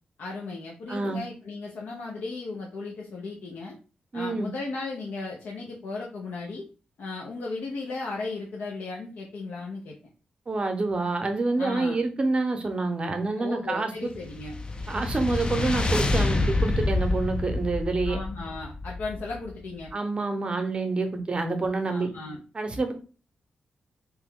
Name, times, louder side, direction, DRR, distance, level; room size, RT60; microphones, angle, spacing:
voice 1, 0.2-3.8 4.1-6.7 7.0-10.0 11.6-12.0 13.4-14.6 18.0-19.9 21.9-22.4, left 3 dB, 85° left, -2 dB, 0.6 m, -36 dB
voice 2, 0.9-1.2 4.1-4.5 10.5-14.1 14.9-18.2 19.9-22.1 22.5-22.9, right 3 dB, 35° right, 6 dB, 0.6 m, -27 dB
sound 1, 14.1-19.6, left 2 dB, 30° left, 0.4 m, -27 dB
3.0 x 2.2 x 3.5 m, 0.36 s
cardioid pair, 95°, 3 cm